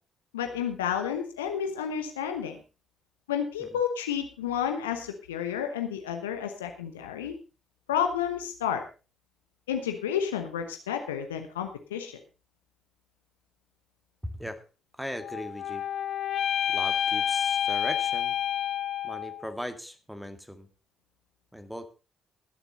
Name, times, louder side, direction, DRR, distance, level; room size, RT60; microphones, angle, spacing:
voice 1, 0.3-2.6 3.3-7.3 7.9-8.8 9.7-12.1, left 8 dB, 80° left, 6 dB, 1.0 m, -31 dB
voice 2, 14.2-14.6 15.0-15.9 16.7-18.4 19.0-20.7 21.5-21.9, equal, ahead, 9 dB, 2.0 m, -38 dB
sound 1, 15.2-19.5, left 9 dB, 55° left, 1.0 m, -29 dB
20.5 x 7.1 x 4.0 m, 0.33 s
figure-of-eight pair, 40°, 0 cm